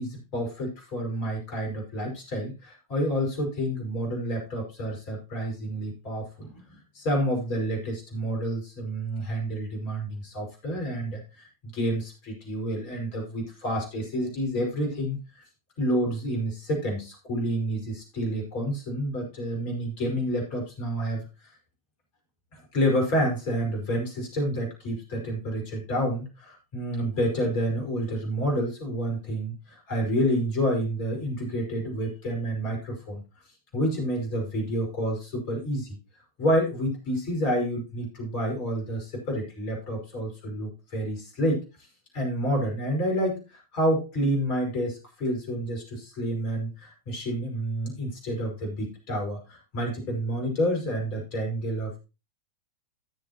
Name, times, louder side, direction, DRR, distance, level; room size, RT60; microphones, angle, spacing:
voice 1, 0.0-15.2 15.8-21.3 22.7-33.2 33.7-36.0 36.4-41.6 42.1-43.4 43.7-52.0, equal, 45° left, 1 dB, 5.2 m, -29 dB
16.5 x 7.0 x 2.9 m, 0.30 s
figure-of-eight pair, 90°, 0 cm